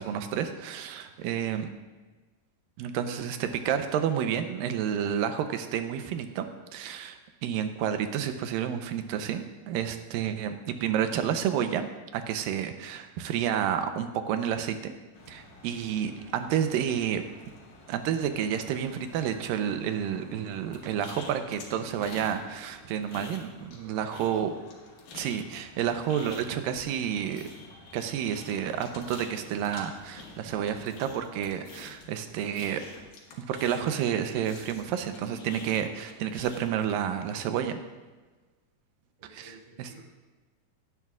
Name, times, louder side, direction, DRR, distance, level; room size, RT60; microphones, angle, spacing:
voice 1, 0.0-1.7 2.8-6.5 6.7-11.9 12.1-14.9 15.3-17.2 17.9-24.5 25.1-27.4 27.9-32.8 33.5-37.8 39.4-39.5 39.8-39.9, right 9 dB, 85° right, 8 dB, 2.4 m, -30 dB
sound 1, 15.1-31.1, left 2 dB, 55° left, 2.6 m, -53 dB
sound 2, 20.7-22.4 22.7-23.8 24.1-34.1 34.4-36.8, left 4 dB, 80° left, 3.3 m, -47 dB
voice 2, 23.7-24.5 39.2-40.0, right 1 dB, 65° right, -7 dB, 4.8 m, -54 dB
16.5 x 11.0 x 2.4 m, 1.3 s
omnidirectional pair, 4.0 m